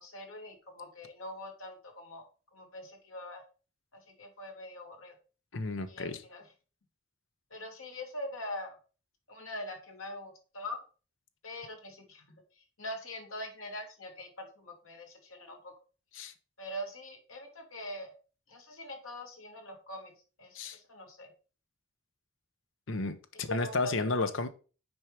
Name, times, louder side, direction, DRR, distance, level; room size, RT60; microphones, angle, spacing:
voice 1, 0.0-2.2 2.5-3.4 3.9-5.1 5.9-6.4 7.5-8.8 9.3-10.8 11.4-12.4 12.8-15.7 16.6-18.1 18.5-20.1 20.4-21.3 23.5-24.0, left 1 dB, 90° left, 1 dB, 2.2 m, -43 dB
voice 2, 5.5-6.2 16.1-16.3 20.5-20.8 22.9-24.5, left 3 dB, 70° left, 10 dB, 0.8 m, -32 dB
6.3 x 4.6 x 5.0 m, 0.36 s
head